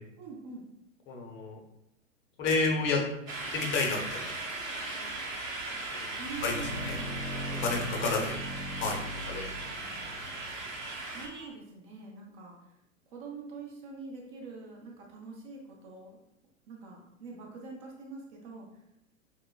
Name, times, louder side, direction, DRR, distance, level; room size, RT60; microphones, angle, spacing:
voice 1, 0.2-0.6 6.2-7.1 11.1-12.6 13.1-16.2 16.7-18.7, right 4 dB, 40° right, -1 dB, 0.8 m, -44 dB
voice 2, 1.1-1.6 2.4-3.0 3.5-4.3 6.4-7.0 7.6-8.4 8.8-9.5, left 4 dB, 30° left, 1 dB, 0.7 m, -30 dB
sound 1, 3.3-11.3, right 2 dB, 80° right, 0.9 m, -38 dB
sound 2, 4.6-11.5, right 3 dB, 55° right, 1.1 m, -49 dB
sound 3, 6.3-10.6, equal, 80° left, 1.1 m, -39 dB
4.5 x 2.0 x 2.3 m, 0.81 s
hypercardioid pair, 100°, 40 cm